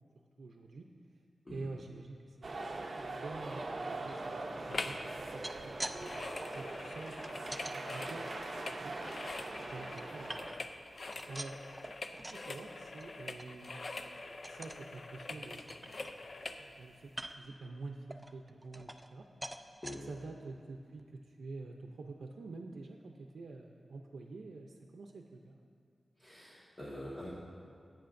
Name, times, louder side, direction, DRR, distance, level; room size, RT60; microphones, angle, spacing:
voice 1, 0.4-0.9 1.5-2.5 2.8-8.3 8.7-9.0 9.6-10.4 11.3-11.6 12.1-13.8 14.5-16.1 16.6-17.1 17.4-19.3 20.1-25.6, right 3 dB, 90° right, 1 dB, 0.6 m, -48 dB
sound 1, 2.4-10.5, right 2 dB, 50° right, 0.7 m, -42 dB
sound 2, 4.7-5.1 5.3-16.6 17.1-17.2, left 3 dB, 50° left, 0.5 m, -44 dB
sound 3, 5.2-6.0 6.3-7.8 8.3-9.3 9.7-10.8 11.1-12.5 12.8-13.1 13.4-13.5 13.9-14.1 14.4-14.8 15.3-15.4 15.7-16.5 17.1-17.6 18.1-19.2 19.4-20.0 20.6-20.7 21.0-21.1, right 1 dB, 15° right, 0.4 m, -46 dB
voice 2, 26.2-27.3, left 1 dB, 20° left, -9 dB, 1.6 m, -45 dB
17.0 x 8.7 x 2.6 m, 2.3 s
wide cardioid pair, 115°, 0 cm